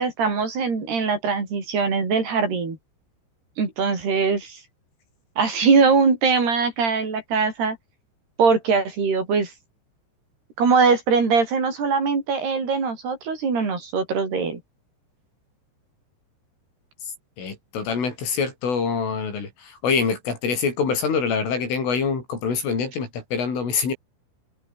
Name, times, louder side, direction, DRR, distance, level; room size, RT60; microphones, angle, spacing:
voice 1, 0.0-2.8 3.6-4.6 5.4-7.8 8.4-9.5 10.6-14.6, right 5 dB, 55° right, 8.3 m, -21 dB
voice 2, 17.4-23.9, left 5 dB, 75° left, 9.9 m, -25 dB
open air
omnidirectional pair, 5.7 m